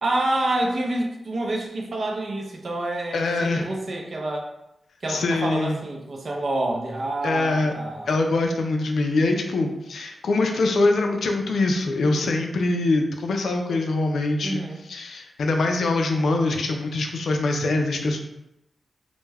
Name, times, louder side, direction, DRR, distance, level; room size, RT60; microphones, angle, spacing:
voice 1, 0.0-4.5 5.0-8.1 14.4-14.8, right 1 dB, 45° right, 0 dB, 0.4 m, -27 dB
voice 2, 3.1-3.7 5.1-5.8 7.2-7.7 8.1-14.6 14.9-18.2, left 2 dB, 80° left, 3 dB, 0.3 m, -23 dB
2.2 x 2.1 x 3.2 m, 0.86 s
wide cardioid pair, 180°, 0 cm